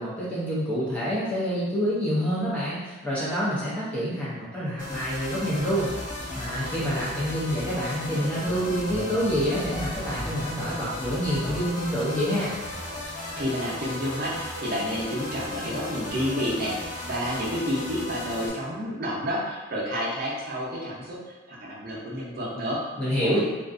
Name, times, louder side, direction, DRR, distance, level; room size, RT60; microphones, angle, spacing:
voice 1, 0.0-5.9 6.3-12.5 23.0-23.4, equal, 5° left, -9 dB, 0.4 m, -27 dB
sound 1, 4.8-18.5, left 1 dB, 35° left, 0.8 m, -35 dB
voice 2, 13.4-22.8 23.2-23.4, equal, 45° right, -6 dB, 0.6 m, -30 dB
2.4 x 2.3 x 2.4 m, 1.2 s
head